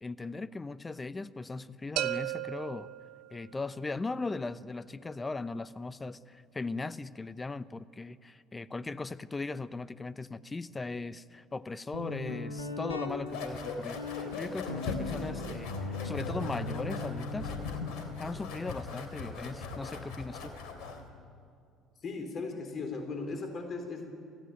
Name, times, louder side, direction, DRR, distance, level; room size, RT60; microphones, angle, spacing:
voice 1, 0.0-2.9 3.3-17.5 18.2-20.5, left 3 dB, 20° left, 0.8 m, -38 dB
sound 1, 2.0-3.8, right 14 dB, 65° right, 0.8 m, -36 dB
Guitar, 11.9-21.4, left 3 dB, 85° left, 1.7 m, -40 dB
sound 2, 13.3-21.1, left 4 dB, 65° left, 3.1 m, -40 dB
voice 2, 22.0-24.1, left 3 dB, 45° left, 3.8 m, -37 dB
28.0 x 15.5 x 9.3 m
figure-of-eight pair, 55°, 0 cm